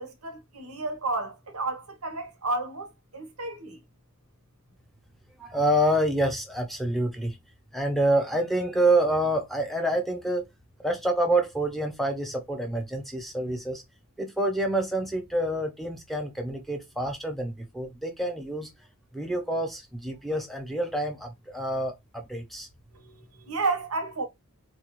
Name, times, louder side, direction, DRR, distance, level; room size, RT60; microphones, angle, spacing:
voice 1, 0.0-3.8 22.9-24.2, right 3 dB, 80° right, 1.0 m, -32 dB
voice 2, 5.4-7.4 7.7-10.5 10.8-13.8 14.2-18.7 19.1-22.7, right 1 dB, ahead, 0.8 m, -27 dB
4.1 x 2.4 x 3.0 m
head